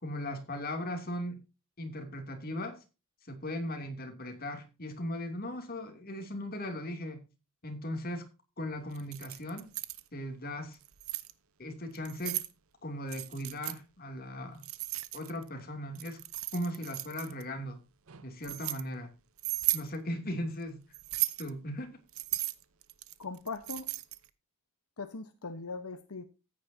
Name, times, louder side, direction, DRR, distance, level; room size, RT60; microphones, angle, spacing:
voice 1, 0.0-1.4 1.8-2.8 3.2-7.2 7.6-8.3 8.6-9.7 10.1-10.8 11.6-12.4 12.8-14.6 15.1-16.2 16.5-17.8 18.2-19.1 19.7-20.9 21.4-21.9, left 1 dB, 40° left, 2.7 m, -38 dB
Keys jangling, 8.9-10.0 10.7-11.3 11.9-12.5 13.1-13.8 14.6-15.5 15.9-17.4 18.1-18.8 19.4-19.9 20.9-21.5 22.1-24.3, right 17 dB, 70° right, 0.8 m, -35 dB
voice 2, 23.2-23.9 25.0-26.2, left 4 dB, 80° left, 1.1 m, -40 dB
14.0 x 9.6 x 2.8 m
head